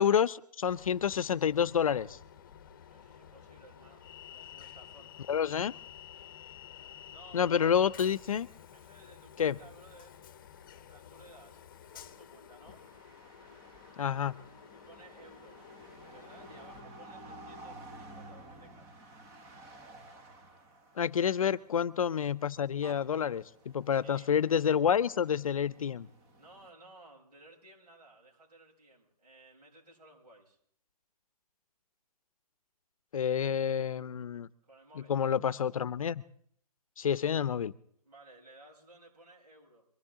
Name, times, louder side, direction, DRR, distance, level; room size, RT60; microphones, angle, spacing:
voice 1, 0.0-2.2 5.3-5.8 7.3-8.5 9.4-9.6 14.0-14.3 21.0-26.1 33.1-34.5 35.0-36.2 37.0-37.7, left 8 dB, 55° left, 18 dB, 0.7 m, -29 dB
Train, 0.7-16.8, left 9 dB, 30° left, 0.9 m, -52 dB
voice 2, 2.9-5.1 7.1-7.8 8.7-10.2 10.7-12.8 14.7-18.9 21.2-21.6 23.9-24.3 26.4-30.6 34.6-35.2 38.0-39.9, right 2 dB, 90° right, -2 dB, 7.6 m, -57 dB
sound 1, 12.7-26.7, right 1 dB, 15° right, 0.8 m, -53 dB
23.5 x 14.5 x 3.7 m, 0.63 s
hypercardioid pair, 165°, 21 cm